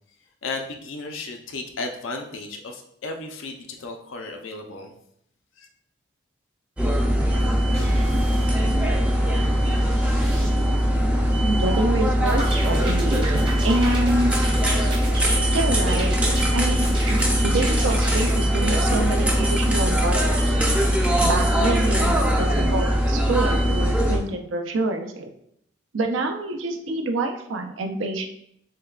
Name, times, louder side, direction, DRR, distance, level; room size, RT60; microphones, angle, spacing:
voice 1, 0.4-4.9 5.6-5.7, left 3 dB, 85° left, 4 dB, 0.6 m, -34 dB
sound 1, 6.8-24.2, equal, 5° right, 0.4 m, -21 dB
sound 2, 7.7-11.0, right 1 dB, 55° right, 1.6 m, -38 dB
voice 2, 11.4-14.6 15.5-20.6 21.2-25.3 25.9-28.3, right 2 dB, 80° right, 4 dB, 0.5 m, -27 dB
sound 3, 12.3-15.4 15.9-16.5 16.8-18.4, right 2 dB, 25° right, 0.7 m, -34 dB
6.4 x 2.2 x 2.4 m, 0.70 s
head